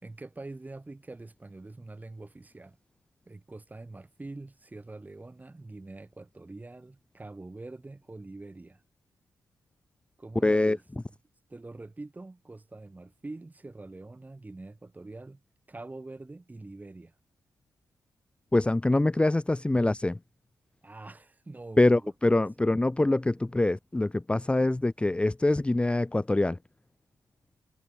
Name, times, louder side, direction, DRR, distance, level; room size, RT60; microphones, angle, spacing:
voice 1, 0.0-2.8 3.3-8.8 10.2-10.8 11.5-15.4 15.7-17.1 20.8-22.3 22.6-22.8 24.6-24.7, right 2 dB, 25° right, 4.4 m, -44 dB
voice 2, 10.4-10.8 18.5-20.2 21.8-26.6, left 2 dB, 15° left, 0.9 m, -24 dB
cardioid pair, 65°, 7 cm